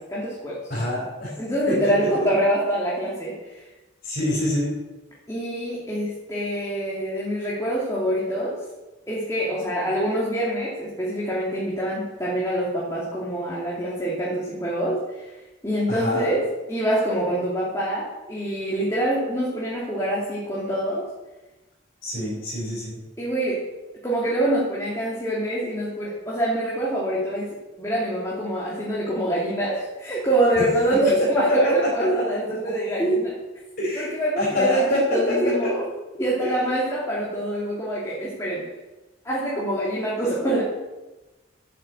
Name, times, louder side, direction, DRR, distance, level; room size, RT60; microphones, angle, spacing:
voice 1, 0.0-0.6 1.4-3.6 5.3-8.6 9.1-15.3 15.6-16.4 16.7-21.0 23.2-23.6 24.0-33.4 33.9-35.8 36.2-38.6 39.2-40.6, right 1 dB, 15° left, -6 dB, 2.8 m, -25 dB
voice 2, 0.7-1.3 1.7-2.3 4.0-4.7 15.9-16.3 22.0-23.0 31.3-32.2 33.8-34.1 34.4-35.7 36.4-36.5, left 1 dB, 45° left, -6 dB, 4.8 m, -25 dB
13.5 x 7.6 x 7.9 m, 1.1 s
head